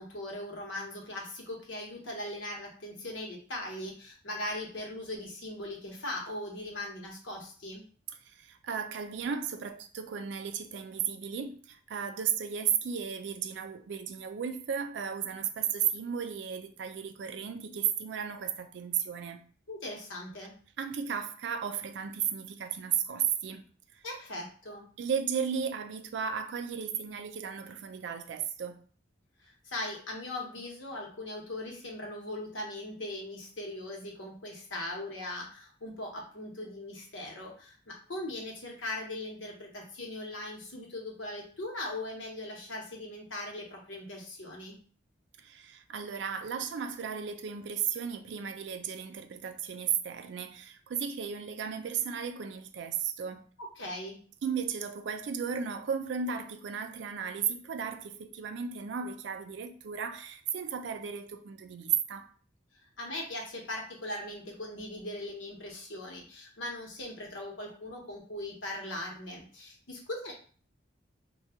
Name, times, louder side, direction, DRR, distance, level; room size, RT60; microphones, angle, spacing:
voice 1, 0.0-7.8 19.7-20.5 24.0-24.9 29.4-44.8 53.6-54.2 63.0-70.3, left 1 dB, 80° left, 0.9 m, -39 dB
voice 2, 8.3-19.4 20.8-23.6 25.0-28.8 45.4-53.5 54.4-62.3, right 7 dB, 65° right, 0.4 m, -34 dB
2.6 x 2.3 x 3.5 m
head